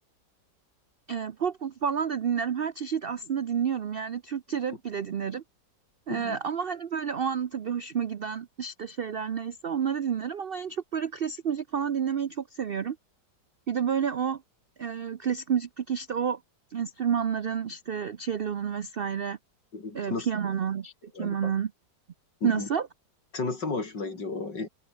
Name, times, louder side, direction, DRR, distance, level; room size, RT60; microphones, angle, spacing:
voice 1, 1.1-5.4 6.1-13.0 13.7-14.4 14.8-16.4 16.7-19.4 19.9-20.9 21.2-21.7 22.4-22.9, right 7 dB, 70° right, 0.5 m, -30 dB
voice 2, 19.7-20.3 21.1-21.5 22.4-22.7 23.3-24.7, left 3 dB, 80° left, 4.8 m, -33 dB
omnidirectional pair, 1.9 m